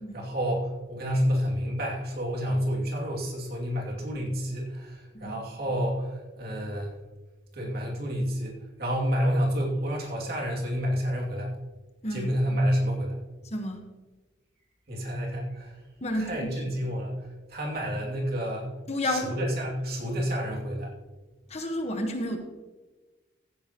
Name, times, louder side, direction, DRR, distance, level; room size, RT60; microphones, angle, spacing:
voice 1, 0.1-7.0 7.5-11.5 12.1-13.2 14.9-15.7 16.2-17.1 17.5-18.7 19.0-20.9, equal, 55° right, -2 dB, 2.7 m, -29 dB
voice 2, 16.0-16.7 18.9-19.3 21.5-22.4, left 1 dB, 35° left, 4 dB, 1.3 m, -31 dB
15.0 x 10.0 x 3.0 m, 1.2 s
head